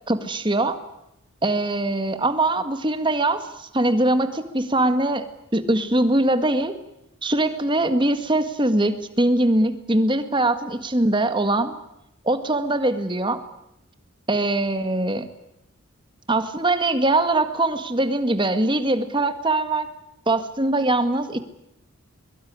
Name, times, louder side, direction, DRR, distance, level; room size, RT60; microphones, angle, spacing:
voice 1, 0.1-0.8 1.4-5.3 5.5-6.8 7.2-11.7 12.2-13.4 14.3-15.3 16.3-19.9 20.3-21.4, right 2 dB, 20° right, 10 dB, 1.8 m, -22 dB
23.0 x 22.5 x 9.6 m, 0.85 s
head